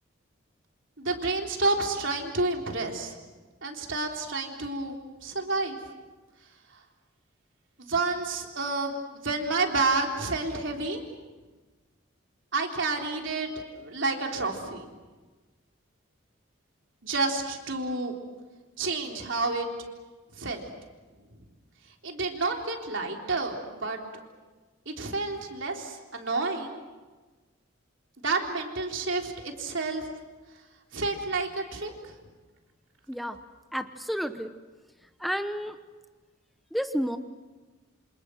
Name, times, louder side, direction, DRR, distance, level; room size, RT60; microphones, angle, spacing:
voice 1, 1.0-3.1 3.6-5.8 6.7-6.8 7.8-9.0 9.2-11.0 12.5-14.9 17.0-18.1 18.8-19.7 20.4-20.6 21.3-21.4 22.0-24.0 24.9-26.8 28.2-30.1 30.9-32.1, right 3 dB, 65° right, 1 dB, 3.6 m, -30 dB
voice 2, 33.7-34.5 35.2-35.8 36.7-37.2, equal, ahead, 8 dB, 0.8 m, -30 dB
28.0 x 27.0 x 6.4 m, 1.3 s
head